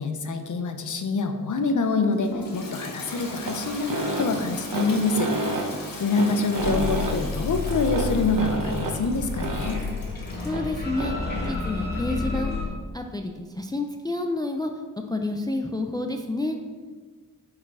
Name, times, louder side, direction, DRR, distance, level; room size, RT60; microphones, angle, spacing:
voice 1, 0.0-5.3 6.0-9.8, left 3 dB, 60° left, 7 dB, 0.8 m, -26 dB
Toilet flush, 2.0-10.6, left 2 dB, 80° left, 1.4 m, -39 dB
sound 1, 3.2-11.7, right 2 dB, 70° right, 1.0 m, -31 dB
sound 2, 6.6-12.7, left 4 dB, 30° left, 2.1 m, -31 dB
voice 2, 10.4-11.1 11.5-12.5 12.9-14.7 15.1-16.6, left 2 dB, 10° left, 5 dB, 0.4 m, -29 dB
7.1 x 4.8 x 4.8 m, 1.5 s
wide cardioid pair, 120°, 34 cm